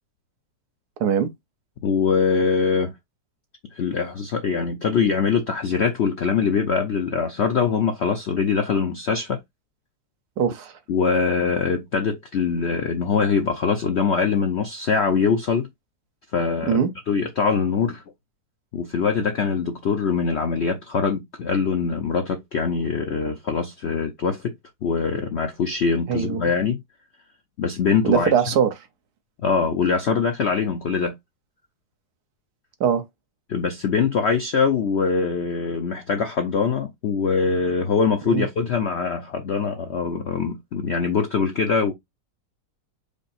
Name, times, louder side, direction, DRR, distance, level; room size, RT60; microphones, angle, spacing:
voice 1, 1.8-2.9 3.7-9.4 10.9-15.7 16.3-18.0 18.7-24.5 24.8-26.8 27.6-28.4 29.4-31.1 33.5-41.9, left 5 dB, 65° left, 0.6 m, -23 dB
voice 2, 10.4-10.7 16.7-16.9 26.1-26.5 28.0-28.7 32.8-33.0 38.3-38.4, right 7 dB, 65° right, 1.3 m, -21 dB
5.1 x 2.0 x 4.1 m
omnidirectional pair, 1.9 m